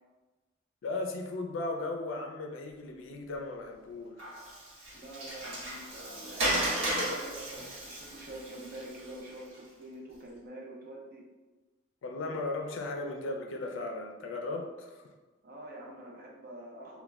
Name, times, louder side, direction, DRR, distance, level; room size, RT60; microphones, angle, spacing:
voice 1, 0.8-4.2 12.0-15.1, left 2 dB, 75° left, 3 dB, 0.4 m, -36 dB
Water, 4.2-9.6, right 1 dB, 70° right, 1.0 m, -35 dB
voice 2, 4.9-11.3 15.4-17.0, right 1 dB, 50° right, -2 dB, 0.6 m, -46 dB
2.2 x 2.1 x 3.4 m, 1.2 s
head